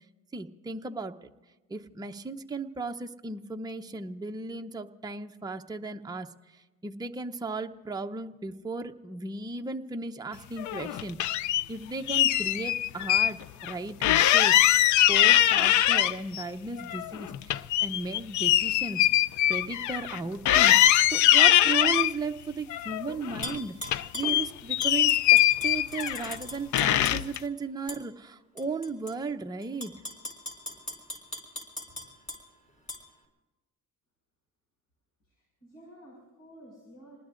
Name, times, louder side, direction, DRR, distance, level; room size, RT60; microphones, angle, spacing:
voice 1, 0.3-1.3 1.7-6.3 6.8-11.2 11.7-14.6 15.1-19.1 19.5-20.8 21.1-29.9, right 3 dB, 15° right, 4 dB, 0.7 m, -36 dB
sound 1, 10.6-11.6 12.1-13.3 13.6-13.7 14.0-16.4 16.8-20.2 20.5-22.1 22.7-23.6 23.8-26.4 26.7-27.4, left 13 dB, 75° left, 0.5 m, -22 dB
Tap / Glass, 23.4-24.3 24.8-27.4 27.9-28.0 28.6-29.1 29.6-32.4 32.9-33.0, left 1 dB, 25° left, 4.5 m, -39 dB
voice 2, 35.2-37.2, right 1 dB, 60° left, -1 dB, 5.6 m, -52 dB
27.5 x 20.0 x 2.5 m, 1.2 s
cardioid pair, 90°, 30 cm